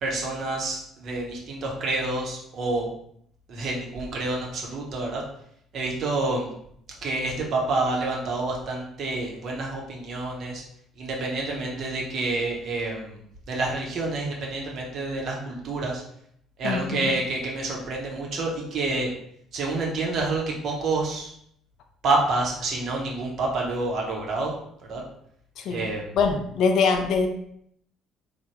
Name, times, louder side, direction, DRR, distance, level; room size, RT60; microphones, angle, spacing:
voice 1, 0.0-2.9 3.5-5.2 5.7-6.5 7.0-10.6 11.0-13.2 13.5-16.0 16.6-19.1 19.5-21.3 22.0-24.5 24.9-25.0 25.7-26.0, right 2 dB, 50° right, -2 dB, 0.8 m, -28 dB
voice 2, 16.6-17.1 25.6-27.3, left 5 dB, 55° left, 5 dB, 0.4 m, -24 dB
3.3 x 2.2 x 2.9 m, 0.69 s
figure-of-eight pair, 50°, 0 cm